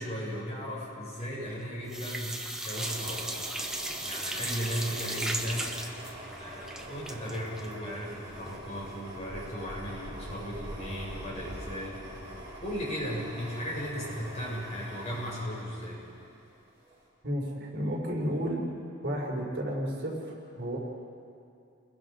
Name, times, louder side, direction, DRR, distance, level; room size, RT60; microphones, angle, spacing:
voice 1, 0.0-3.3 4.0-5.8 6.4-12.0 12.6-16.0, equal, 35° left, -5 dB, 7.1 m, -36 dB
sound 1, 1.2-1.6 1.9-8.7 9.1-9.2 9.5-9.6, right 1 dB, 5° right, 1.3 m, -36 dB
sound 2, 2.7-16.4 16.8-17.0, right 1 dB, 20° right, 7.7 m, -44 dB
voice 2, 17.2-18.6 19.0-20.8, equal, 55° right, -2 dB, 4.9 m, -32 dB
30.0 x 22.0 x 5.1 m, 2.5 s
head